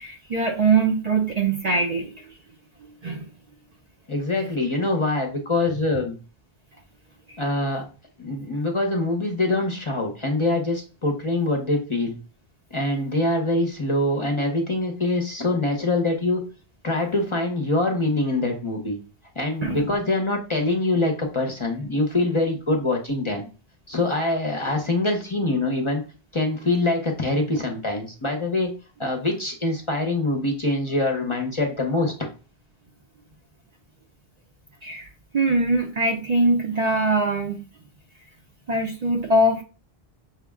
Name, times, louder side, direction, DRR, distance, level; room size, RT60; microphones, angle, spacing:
voice 1, 0.0-2.1 3.0-3.3 19.6-19.8 34.8-35.1 35.3-37.6 38.7-39.6, right 2 dB, 50° right, 2 dB, 0.6 m, -22 dB
voice 2, 4.1-6.2 7.4-7.9 8.2-12.2 12.7-16.4 16.8-19.0 19.4-23.5 23.9-26.0 26.3-28.7 29.0-32.3, left 2 dB, 35° left, 2 dB, 0.6 m, -24 dB
5.7 x 2.0 x 3.4 m, 0.35 s
omnidirectional pair, 1.0 m